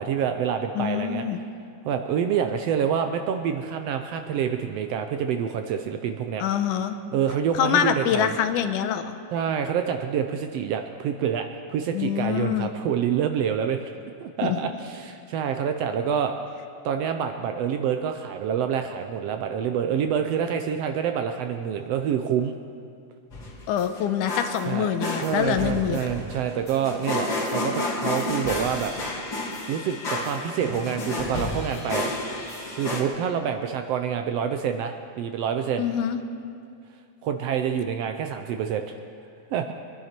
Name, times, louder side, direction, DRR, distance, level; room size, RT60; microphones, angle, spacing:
voice 1, 0.0-1.3 1.8-6.4 7.1-8.3 9.3-13.8 14.2-16.3 16.8-22.6 24.7-24.9 25.2-28.9 29.7-32.1 32.8-35.9 37.2-39.0 39.5-39.7, right 8 dB, 80° right, 6 dB, 1.4 m, -27 dB
voice 2, 0.8-1.4 6.4-7.0 7.5-9.2 11.9-12.7 14.4-14.6 23.7-26.1 35.8-36.2, left 9 dB, 90° left, 9 dB, 2.3 m, -25 dB
sound 1, 23.3-33.0, left 2 dB, 35° left, 2.7 m, -31 dB
24.0 x 11.0 x 4.4 m, 2.3 s
omnidirectional pair, 3.6 m